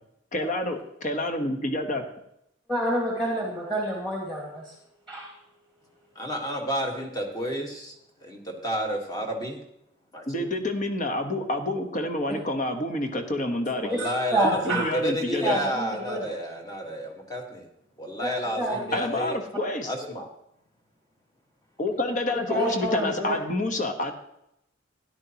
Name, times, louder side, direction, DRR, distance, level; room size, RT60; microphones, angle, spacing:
voice 1, 0.3-2.0 10.3-13.9 14.4-15.6 18.9-19.9 21.8-24.1, left 1 dB, 40° left, 6 dB, 1.1 m, -28 dB
voice 2, 2.7-4.7 5.1-5.3 13.9-14.9 15.4-16.2 18.2-18.3 18.6-18.8 22.5-23.4, right 1 dB, 5° left, -3 dB, 1.8 m, -27 dB
voice 3, 6.1-7.9 8.2-9.6 10.1-10.5 13.7-17.6 18.0-19.4 19.8-20.3, equal, 20° left, 2 dB, 1.5 m, -31 dB
13.0 x 10.5 x 2.9 m, 0.79 s
head